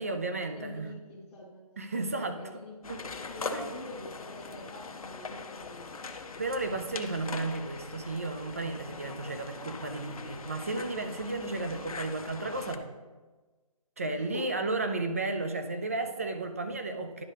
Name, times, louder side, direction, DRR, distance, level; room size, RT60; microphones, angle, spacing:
voice 1, 0.0-0.9 1.8-2.4 2.9-3.0 3.5-3.6 5.3-5.4 6.4-12.9 14.0-17.2, right 3 dB, 25° right, 7 dB, 0.3 m, -33 dB
voice 2, 0.5-1.6 1.9-6.1 14.0-14.6, left 1 dB, 5° left, -6 dB, 0.9 m, -45 dB
sound 1, 2.8-12.8, left 4 dB, 70° left, 0.7 m, -41 dB
10.5 x 5.3 x 3.3 m, 1.3 s
figure-of-eight pair, 155°, 19 cm